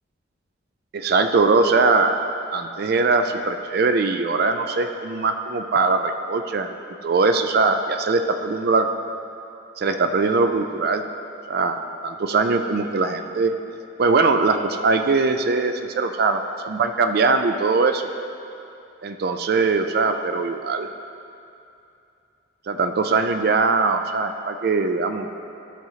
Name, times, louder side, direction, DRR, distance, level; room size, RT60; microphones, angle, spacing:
voice 1, 0.9-2.2 2.5-6.7 7.0-8.9 9.8-11.0 11.5-13.5 14.0-18.1 19.0-20.9 22.7-25.3, right 4 dB, 55° right, 7 dB, 0.4 m, -21 dB
12.0 x 6.2 x 2.8 m, 2.7 s
head